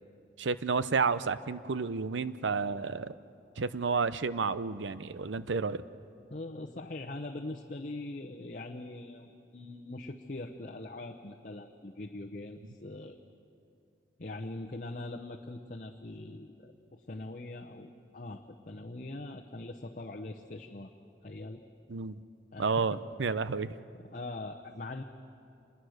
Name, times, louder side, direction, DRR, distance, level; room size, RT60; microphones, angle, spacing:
voice 1, 0.4-3.1 3.6-5.8 21.9-22.2 22.6-23.7, right 4 dB, 85° right, 15 dB, 0.6 m, -31 dB
voice 2, 6.3-13.2 14.2-20.9 21.2-21.6 22.5-23.0 24.1-25.0, left 2 dB, 45° left, 2 dB, 0.8 m, -42 dB
27.0 x 21.0 x 6.5 m, 2.6 s
head